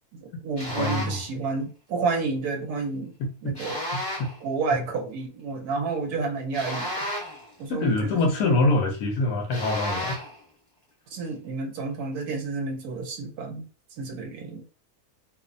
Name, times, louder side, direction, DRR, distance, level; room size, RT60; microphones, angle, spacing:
voice 1, 0.1-3.1 3.4-3.8 4.4-6.9 7.6-8.2 11.1-13.6 14.0-14.6, right 4 dB, 85° right, 4 dB, 1.1 m, -30 dB
sound 1, 0.6-1.2 3.5-4.4 6.5-7.5 9.5-10.4, equal, 20° left, 0.8 m, -32 dB
voice 2, 0.8-1.2 3.2-3.6 3.9-4.3 4.7-4.8 7.7-10.2, left 2 dB, 75° left, 4 dB, 1.1 m, -25 dB
2.8 x 2.0 x 2.5 m, 0.35 s
omnidirectional pair, 1.6 m